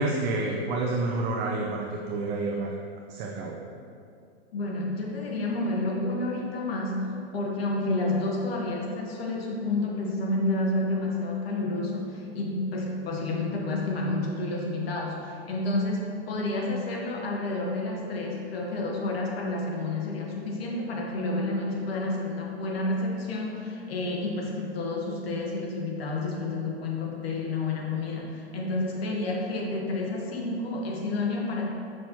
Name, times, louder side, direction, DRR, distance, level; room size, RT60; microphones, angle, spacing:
voice 1, 0.0-2.8 3.1-3.6, right 2 dB, 35° right, 0 dB, 0.6 m, -29 dB
voice 2, 4.5-31.7, left 2 dB, 70° left, -1 dB, 1.3 m, -30 dB
6.2 x 6.0 x 2.9 m, 2.5 s
hypercardioid pair, 120°, 31 cm